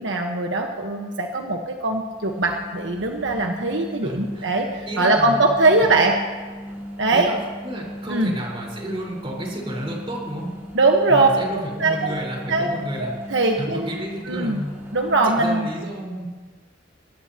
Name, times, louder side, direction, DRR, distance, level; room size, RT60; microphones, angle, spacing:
voice 1, 0.0-6.2 7.0-7.3 8.1-8.3 10.7-11.3 11.8-12.1 12.5-12.7 13.0-13.9 14.3-14.6 14.9-15.7, right 2 dB, 80° right, 2 dB, 1.3 m, -21 dB
sound 1, 2.1-15.6, equal, 15° right, 4.6 m, -37 dB
voice 2, 4.0-4.5 4.9-5.4 7.1-7.4 7.6-10.5 11.1-13.1 13.6-14.7 15.4-16.3, right 1 dB, 30° right, -3 dB, 4.8 m, -31 dB
23.0 x 16.5 x 3.0 m, 1.3 s
head